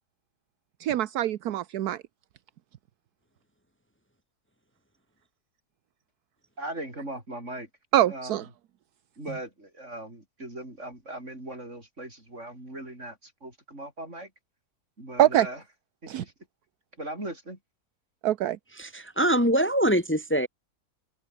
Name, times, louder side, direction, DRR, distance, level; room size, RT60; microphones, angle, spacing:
voice 1, 0.8-2.0 7.9-8.4 15.2-15.5 16.1-16.2 18.2-18.6, right 13 dB, 75° right, 1.3 m, -24 dB
voice 2, 6.6-7.7 8.1-8.4 9.2-14.3 15.0-15.6 16.0-16.3 17.0-17.6, right 1 dB, 45° right, 8.6 m, -39 dB
voice 3, 18.8-20.5, equal, 5° left, 2.4 m, -23 dB
open air
omnidirectional pair, 1.7 m